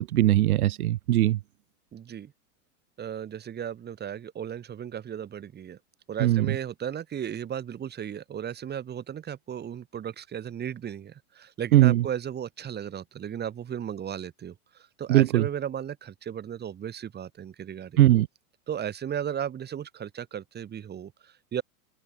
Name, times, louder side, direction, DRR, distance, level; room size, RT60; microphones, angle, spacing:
voice 1, 0.0-1.4 6.2-6.5 11.7-12.0 15.1-15.4 18.0-18.3, right 14 dB, 75° right, 1.5 m, -20 dB
voice 2, 1.9-2.3 3.0-5.8 6.1-18.0 18.7-21.6, right 9 dB, 20° right, 7.2 m, -35 dB
supercardioid pair, 140°, 44 cm